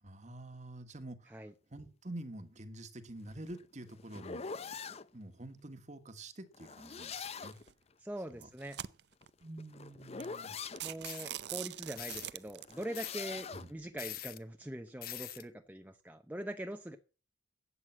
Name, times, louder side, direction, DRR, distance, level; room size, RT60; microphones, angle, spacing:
voice 1, 0.0-4.5 5.1-7.6 8.3-8.5 9.4-10.6 13.5-13.7, right 1 dB, 40° right, 9 dB, 1.5 m, -47 dB
sound 1, 3.3-5.1 6.5-7.7 9.1-10.8 12.6-13.7, left 5 dB, 35° left, 0.6 m, -44 dB
sound 2, 7.4-7.7 8.3-9.3 9.8-9.9 10.2-10.4 10.7-12.8, right 12 dB, 60° right, 0.6 m, -43 dB
voice 2, 8.0-8.8 10.8-17.0, right 1 dB, 10° right, 5 dB, 0.8 m, -43 dB
sound 3, 11.0-11.3 12.0-12.3 12.9-13.3 14.0-14.4 15.0-15.4, left 12 dB, 50° left, 1.0 m, -43 dB
12.5 x 8.3 x 7.4 m, 0.36 s
head